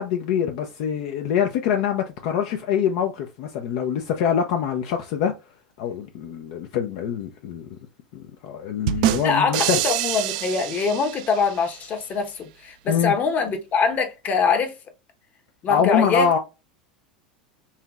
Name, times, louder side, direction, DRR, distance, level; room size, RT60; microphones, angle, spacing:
voice 1, 0.0-5.3 5.8-7.7 8.1-9.8 12.9-13.1 15.7-16.4, left 8 dB, 60° left, 0.6 m, -24 dB
sound 1, 8.9-11.7, right 14 dB, 60° right, 0.4 m, -26 dB
voice 2, 9.2-14.7 15.6-16.3, left 5 dB, 35° left, 1.1 m, -23 dB
5.6 x 3.0 x 2.4 m
hypercardioid pair, 85°, 5 cm